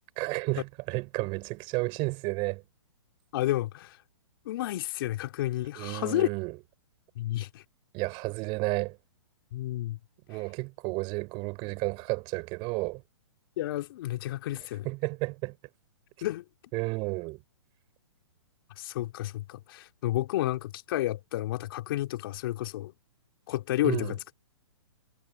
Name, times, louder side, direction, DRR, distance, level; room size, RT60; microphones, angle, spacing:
voice 1, 0.2-2.6 5.8-6.6 7.9-9.0 10.3-13.0 14.8-15.6 16.7-17.4 23.8-24.1, right 27 dB, 35° right, 4.6 m, -32 dB
voice 2, 3.3-4.0 4.4-6.3 7.1-7.6 9.5-10.0 13.6-14.9 16.2-16.4 18.8-22.9 23.5-24.2, left 15 dB, 50° left, 3.0 m, -31 dB
hypercardioid pair, 135°, 15 cm